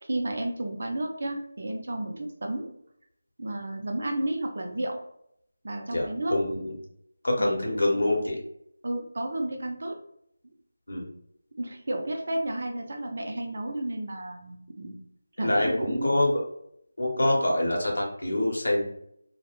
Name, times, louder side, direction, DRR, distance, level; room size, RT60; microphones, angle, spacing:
voice 1, 0.0-2.7 3.4-5.0 5.6-6.4 7.4-7.6 8.8-10.0 11.6-15.0 15.4-16.2, right 1 dB, 60° right, 3 dB, 0.5 m, -32 dB
voice 2, 5.9-6.7 7.2-8.4 10.9-11.0 15.4-16.4 17.0-18.8, left 1 dB, 75° left, -1 dB, 0.9 m, -25 dB
2.2 x 2.1 x 2.9 m, 0.72 s
figure-of-eight pair, 170°, 0 cm